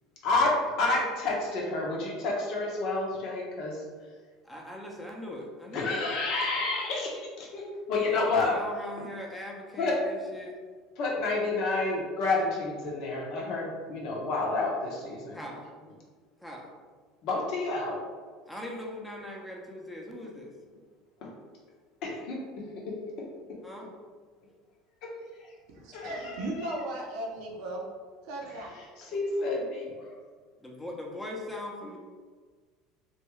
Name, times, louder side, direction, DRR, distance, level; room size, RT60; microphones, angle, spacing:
voice 1, 0.2-3.8 5.7-8.6 9.8-10.0 11.0-15.4 17.2-18.0 21.2-21.3 22.0-23.0 25.0-25.1 25.9-26.8 29.1-30.1, left 3 dB, 60° left, -2 dB, 0.7 m, -29 dB
voice 2, 4.4-6.0 8.0-10.6 15.3-15.7 16.4-16.7 18.5-20.5 23.6-23.9 30.6-32.0, left 1 dB, 5° left, -1 dB, 0.7 m, -40 dB
voice 3, 25.7-27.9 28.2-28.7, right 2 dB, 70° right, 0 dB, 0.6 m, -36 dB
2.6 x 2.3 x 3.1 m, 1.5 s
hypercardioid pair, 80°, 0 cm